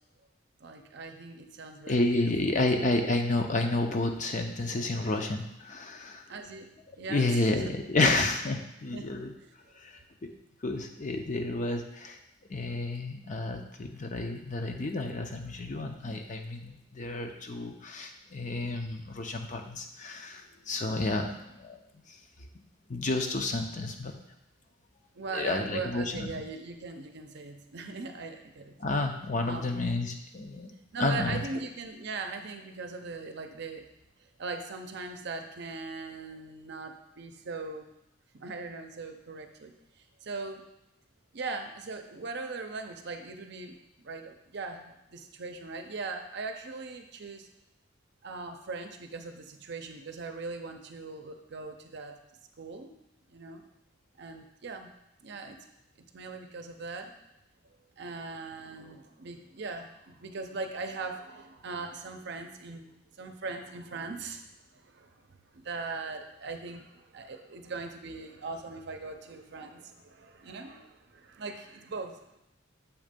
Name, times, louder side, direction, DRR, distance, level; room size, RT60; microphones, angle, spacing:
voice 1, 0.6-2.6 6.3-6.7 7.0-7.7 8.0-8.1 8.9-9.1 9.4-9.5 25.2-28.8 29.4-29.8 30.9-33.8 34.4-37.9 38.3-40.6 41.3-47.5 48.2-52.2 52.6-52.9 53.3-53.6 54.2-54.9 55.2-55.6 56.0-57.1 58.0-72.4, right 3 dB, 60° right, 5 dB, 0.6 m, -40 dB
voice 2, 1.9-6.2 7.1-9.3 9.7-10.3 10.6-12.2 12.5-21.8 22.1-22.2 22.9-24.1 25.3-26.4 28.8-30.7 31.0-31.4, left 2 dB, 40° left, 4 dB, 0.6 m, -30 dB
7.2 x 3.2 x 5.2 m, 0.87 s
head